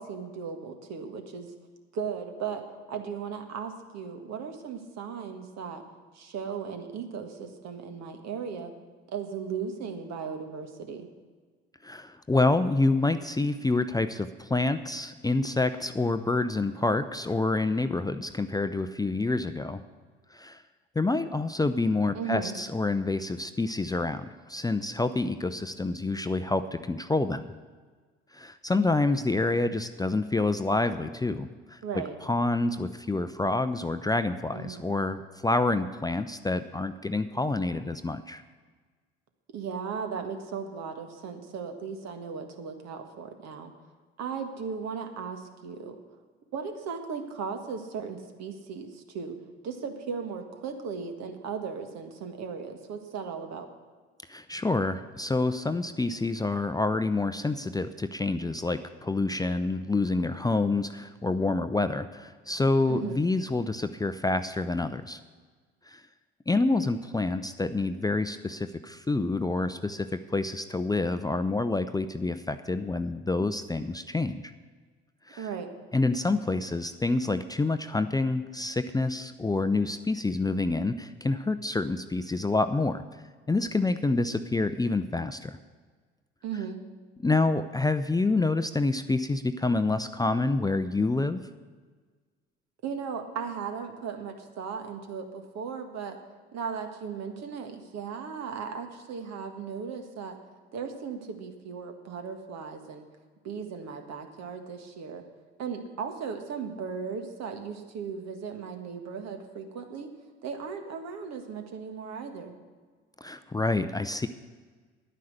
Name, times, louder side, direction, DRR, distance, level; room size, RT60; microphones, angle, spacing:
voice 1, 0.0-1.5 1.9-2.6 2.9-5.8 6.1-8.7 9.1-11.1 22.1-22.5 31.8-32.1 34.5-34.9 39.5-43.7 44.2-45.9 46.5-49.4 49.6-53.7 62.9-63.2 75.4-75.7 86.4-86.8 92.8-96.2 96.5-100.4 100.7-103.1 103.4-105.2 105.6-110.1 110.4-112.5, right 6 dB, 60° right, 6 dB, 1.7 m, -36 dB
voice 2, 11.8-19.8 20.3-20.6 21.0-27.5 28.3-31.8 32.3-38.4 54.3-65.2 65.9-66.0 66.5-74.5 75.3-75.5 75.9-83.0 83.5-85.6 87.2-91.4 113.2-114.3, left 2 dB, 15° left, 10 dB, 0.5 m, -27 dB
10.5 x 9.4 x 6.6 m, 1.4 s
hypercardioid pair, 60°, 30 cm